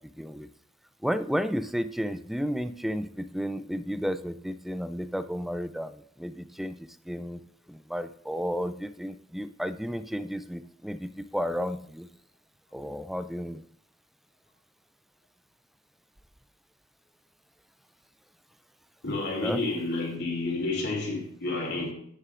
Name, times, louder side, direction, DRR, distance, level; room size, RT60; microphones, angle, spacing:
voice 1, 0.2-0.5 1.0-5.9 6.2-6.8 7.1-7.4 7.7-12.1 12.7-13.6 19.4-19.6, equal, ahead, 0.3 m, -32 dB
voice 2, 19.0-21.9, left 2 dB, 55° left, 2.7 m, -30 dB
11.5 x 8.0 x 2.5 m
head